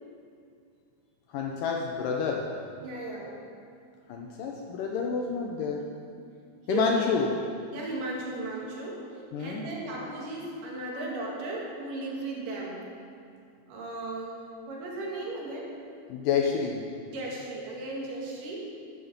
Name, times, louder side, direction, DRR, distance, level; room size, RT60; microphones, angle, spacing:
voice 1, 1.3-2.5 4.1-5.9 6.7-7.4 9.3-9.6 16.1-16.9, left 5 dB, 75° left, 1 dB, 2.1 m, -29 dB
voice 2, 2.8-3.4 6.7-7.1 7.7-9.1 9.4-12.9 13.7-15.8 17.1-18.6, right 2 dB, 65° right, -3 dB, 3.1 m, -36 dB
11.0 x 9.2 x 5.2 m, 2.3 s
omnidirectional pair, 4.4 m